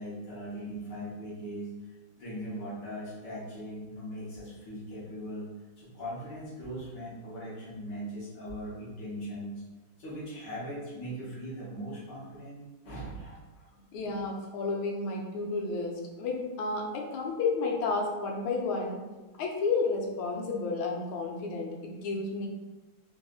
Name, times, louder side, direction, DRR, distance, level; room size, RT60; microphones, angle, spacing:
voice 1, 0.0-1.7 2.2-9.6 10.0-13.7 14.0-14.1, equal, 60° left, -8 dB, 1.6 m, -40 dB
voice 2, 13.9-19.0 19.4-22.5, left 3 dB, 85° left, 0 dB, 1.5 m, -31 dB
3.9 x 2.6 x 2.3 m, 1.1 s
omnidirectional pair, 2.2 m